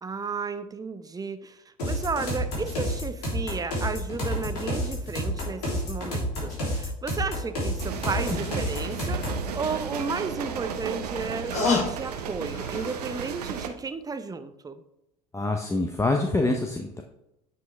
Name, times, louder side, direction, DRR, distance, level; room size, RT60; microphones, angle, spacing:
voice 1, 0.0-14.8, right 4 dB, 20° right, 10 dB, 0.8 m, -33 dB
sound 1, 1.8-9.5, equal, 75° left, 3.2 m, -29 dB
sound 2, 7.8-13.7, right 7 dB, 80° right, 0.8 m, -34 dB
sound 3, 7.9-8.0 8.3-8.4 10.3-13.4 13.8-13.9, left 4 dB, 40° left, 3.1 m, -30 dB
voice 2, 15.3-17.0, left 2 dB, 15° left, 3 dB, 0.8 m, -25 dB
9.3 x 5.5 x 3.4 m, 0.87 s
hypercardioid pair, 65°, 20 cm